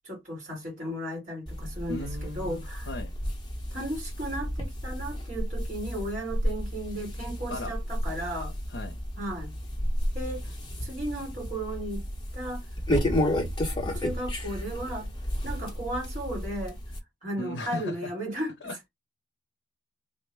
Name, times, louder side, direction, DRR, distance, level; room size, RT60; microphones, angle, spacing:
voice 1, 0.1-2.9 3.7-8.5 9.2-9.5 10.1-10.5 10.8-12.1 12.3-12.6 13.9-15.1 15.4-16.8 17.2-18.5, right 1 dB, 40° right, 2.0 m, -35 dB
sound 1, 1.5-17.0, equal, 20° left, 0.8 m, -32 dB
voice 2, 1.9-3.1 7.5-7.7 8.7-9.0 17.4-18.1 18.6-18.9, left 1 dB, 75° left, 0.6 m, -37 dB
3.4 x 2.1 x 3.3 m
head